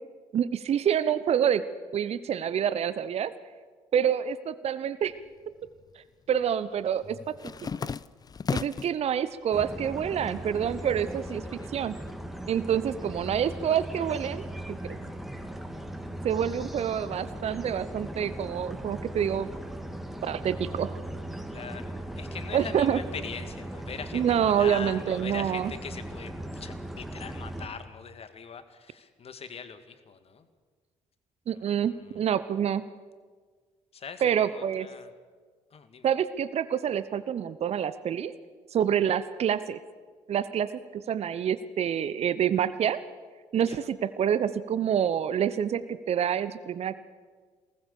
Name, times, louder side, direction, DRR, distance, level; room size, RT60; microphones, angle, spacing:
voice 1, 0.3-1.6 1.9-3.3 3.9-5.1 6.3-7.3 8.5-11.4 11.7-12.0 12.5-14.4 16.2-19.5 20.2-21.0 22.5-23.0 24.1-25.6 31.5-32.8 34.2-34.9 36.0-38.3 38.7-39.8 40.3-43.0 43.5-46.9, right 9 dB, 45° right, 15 dB, 0.9 m, -27 dB
sound 1, 5.1-5.9 6.2-9.0 9.5-10.1 10.4-12.1, left 6 dB, 25° left, 0.6 m, -36 dB
sound 2, 9.5-27.7, right 1 dB, ahead, 2.9 m, -38 dB
voice 2, 21.5-30.5 31.5-32.4 33.9-35.1 35.7-36.1 43.6-43.9, left 6 dB, 40° left, 10 dB, 2.1 m, -42 dB
23.5 x 19.5 x 7.0 m, 1.5 s
figure-of-eight pair, 45°, 15 cm